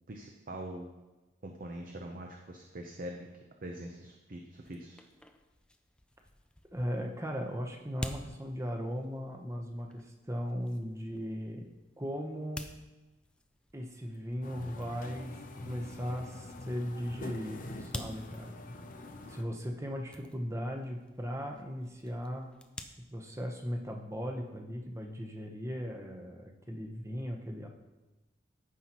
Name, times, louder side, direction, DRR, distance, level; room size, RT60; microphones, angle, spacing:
voice 1, 0.1-0.9 1.4-3.3 3.6-5.0, right 1 dB, 45° right, 2 dB, 0.7 m, -43 dB
sound 1, 4.5-22.8, left 1 dB, 5° left, 0.3 m, -50 dB
voice 2, 6.7-11.7 12.0-12.7 13.7-15.4 15.6-18.5 19.3-22.5 23.1-27.7, equal, 15° right, 2 dB, 0.9 m, -37 dB
sound 2, 14.4-19.4, left 1 dB, 45° left, 0.7 m, -45 dB
14.5 x 5.5 x 3.0 m, 1.1 s
head